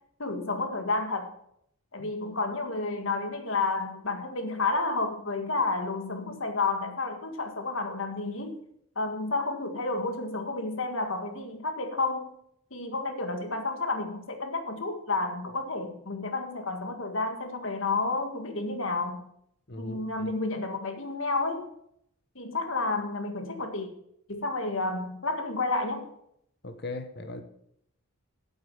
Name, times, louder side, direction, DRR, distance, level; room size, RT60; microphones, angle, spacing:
voice 1, 0.2-1.3 1.9-8.6 9.0-12.3 12.7-19.2 19.8-21.7 22.4-23.9 24.3-26.1, left 3 dB, 65° left, 6 dB, 1.9 m, -31 dB
voice 2, 19.7-20.3 26.6-27.4, left 2 dB, 50° left, 8 dB, 1.1 m, -39 dB
9.1 x 8.1 x 7.4 m, 0.72 s
head